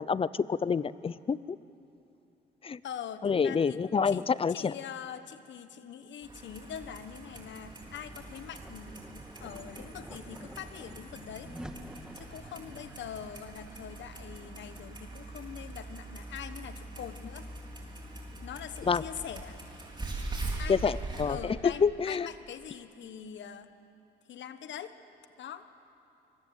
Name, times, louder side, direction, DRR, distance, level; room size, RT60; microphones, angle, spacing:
voice 1, 0.0-1.4 2.6-2.8 3.2-4.7 18.9-19.0 20.7-21.4 21.6-22.3, left 6 dB, 30° left, 18 dB, 0.6 m, -27 dB
voice 2, 2.8-3.8 4.1-11.5 12.1-17.5 18.4-19.6 20.6-21.0 21.2-23.7 24.3-25.0 25.4-25.7, left 8 dB, 65° left, 11 dB, 1.2 m, -43 dB
Clock, 6.2-21.3, right 2 dB, 25° right, 4.7 m, -42 dB
sound 1, 7.0-17.1, right 1 dB, 5° right, 1.7 m, -51 dB
25.0 x 22.5 x 8.1 m, 2.8 s
cardioid pair, 90°, 20 cm